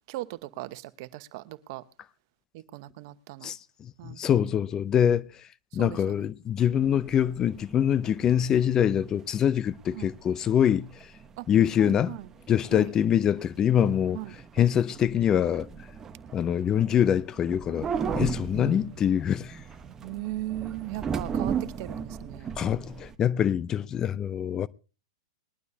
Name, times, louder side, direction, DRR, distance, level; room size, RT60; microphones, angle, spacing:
voice 1, 0.1-1.8 2.5-3.5 4.0-4.4 5.8-6.2 9.9-10.1 11.4-11.5 11.8-12.3 12.7-12.9 14.1-14.3 18.6-18.8 19.8-22.5, right 18 dB, 55° right, 1.1 m, -38 dB
voice 2, 3.4-5.2 5.7-10.9 11.5-12.2 12.5-14.2 14.6-15.7 16.3-17.9 18.1-19.6 22.6-24.7, left 9 dB, 25° left, 0.6 m, -24 dB
sound 1, 6.7-23.2, right 6 dB, 20° right, 1.1 m, -37 dB
21.0 x 12.0 x 2.8 m
hypercardioid pair, 125°, 2 cm